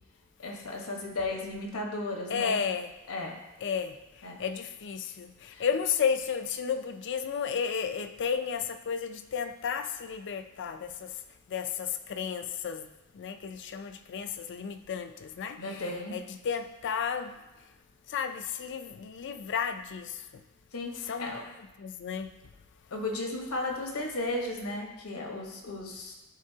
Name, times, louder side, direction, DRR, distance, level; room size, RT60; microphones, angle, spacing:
voice 1, 0.4-2.6 3.1-3.4 4.2-4.4 5.5-5.6 15.6-16.2 20.7-21.4 22.9-26.1, left 2 dB, 70° left, 1.1 m, -35 dB
voice 2, 2.3-2.9 3.6-3.9 4.4-5.3 5.6-10.9 11.5-12.8 13.2-15.8 16.1-17.3 18.1-20.1 21.1-21.3 21.8-22.3, left 7 dB, 55° left, 0.4 m, -32 dB
11.0 x 3.8 x 2.8 m
head